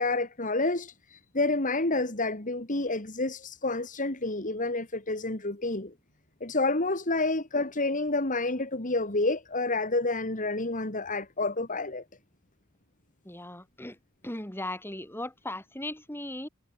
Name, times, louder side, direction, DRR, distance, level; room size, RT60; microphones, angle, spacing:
voice 1, 0.0-5.9 6.4-12.0, left 2 dB, 35° left, 2.6 m, -29 dB
voice 2, 13.2-14.0 14.2-16.5, left 1 dB, 10° left, 4.4 m, -37 dB
head